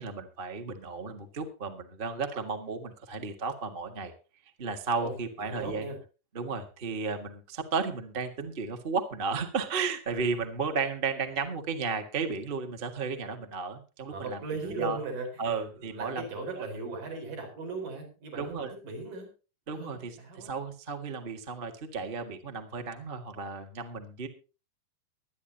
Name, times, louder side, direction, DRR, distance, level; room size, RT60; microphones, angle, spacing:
voice 1, 0.0-4.1 4.6-5.9 6.3-15.0 15.4-16.2 16.5-16.6 18.4-18.7 19.7-24.3, right 4 dB, 30° right, 6 dB, 0.9 m, -34 dB
voice 2, 5.0-6.0 14.1-19.3 19.7-20.5, right 3 dB, 70° right, 2 dB, 6.2 m, -38 dB
23.0 x 9.7 x 2.8 m, 0.32 s
omnidirectional pair, 3.9 m